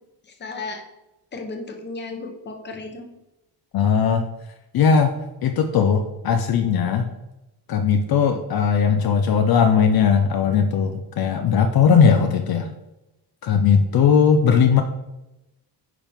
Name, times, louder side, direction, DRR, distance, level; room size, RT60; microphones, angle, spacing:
voice 1, 0.4-0.8 1.3-3.0, left 3 dB, 25° left, 3 dB, 1.1 m, -34 dB
voice 2, 3.7-4.3 4.7-5.2 5.4-7.1 7.7-12.7 13.4-14.8, left 6 dB, 60° left, 6 dB, 0.7 m, -18 dB
9.4 x 5.7 x 3.6 m, 0.94 s
cardioid pair, 180°, 41 cm